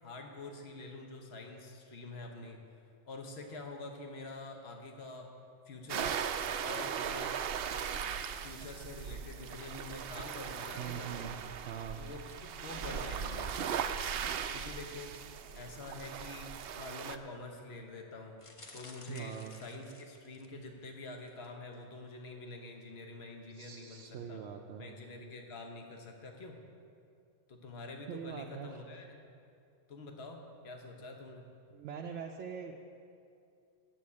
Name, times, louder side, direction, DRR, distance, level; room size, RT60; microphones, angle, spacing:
voice 1, 0.0-2.6 3.0-5.3 5.7-6.2 6.6-7.4 8.4-11.3 12.0-13.9 14.5-15.1 15.5-18.4 18.7-24.4 24.8-26.6 27.5-29.2 29.9-31.4, left 2 dB, 65° left, 3 dB, 1.3 m, -46 dB
sound 1, 5.9-17.2, right 8 dB, 65° right, 0.7 m, -38 dB
voice 2, 10.8-11.3 11.6-12.0 19.1-19.6 23.5-25.0 28.1-28.8 31.7-32.8, right 7 dB, 85° right, 1 dB, 1.0 m, -43 dB
sound 2, 18.4-20.7 21.2-21.5 21.7-21.8, left 2 dB, 30° left, 0.8 m, -54 dB
9.0 x 7.2 x 8.5 m, 2.5 s
omnidirectional pair, 1.2 m